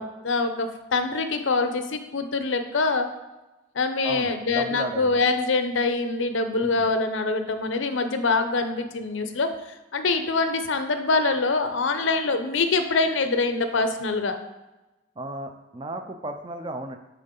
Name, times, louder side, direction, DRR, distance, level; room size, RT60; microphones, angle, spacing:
voice 1, 0.0-3.1 3.7-9.5 9.9-14.4, left 3 dB, 75° left, 8 dB, 0.7 m, -24 dB
voice 2, 4.0-5.2 6.6-6.9 15.2-17.0, right 1 dB, 25° right, 6 dB, 0.5 m, -34 dB
9.3 x 3.9 x 3.8 m, 1.0 s
head